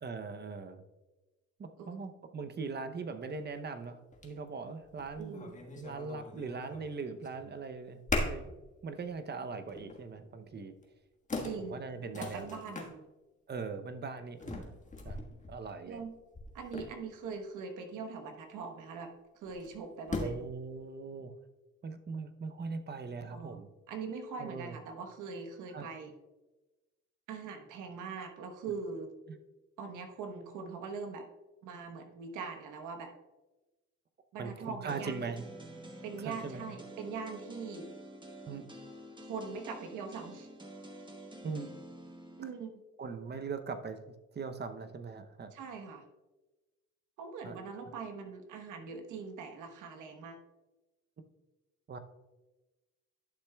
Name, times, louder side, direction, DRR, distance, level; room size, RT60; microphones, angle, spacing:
voice 1, 0.0-0.8 1.6-8.4 8.8-10.7 11.7-12.6 13.5-14.7 15.0-16.0 20.2-21.3 21.8-23.7 24.4-24.8 25.7-25.9 29.3-29.4 34.4-35.5 36.2-36.7 38.5-38.6 41.4-41.7 43.0-45.5 47.4-47.6 47.9-48.0 51.9-52.0, right 4 dB, 35° right, 9 dB, 0.7 m, -41 dB
sound 1, 3.3-3.4 4.1-4.3 4.8-6.9 7.2-7.7 8.1-8.6 9.0-9.2 9.7-10.1 10.8-10.9 11.3-12.9 14.4-17.3 19.5-20.5, left 2 dB, 25° left, 1.4 m, -39 dB
voice 2, 5.2-5.5 8.4-8.5 11.4-11.8 12.1-13.0 15.9-16.1 16.5-20.3 23.3-26.1 27.3-29.1 29.8-31.2 31.6-33.1 34.3-35.2 36.0-37.9 39.3-40.5 42.4-42.7 45.5-46.0 47.2-50.4, right 5 dB, 90° right, 5 dB, 1.1 m, -42 dB
sound 2, 34.9-42.5, right 1 dB, 15° right, 1.2 m, -49 dB
11.5 x 6.6 x 2.3 m, 1.1 s
cardioid pair, 90°, 30 cm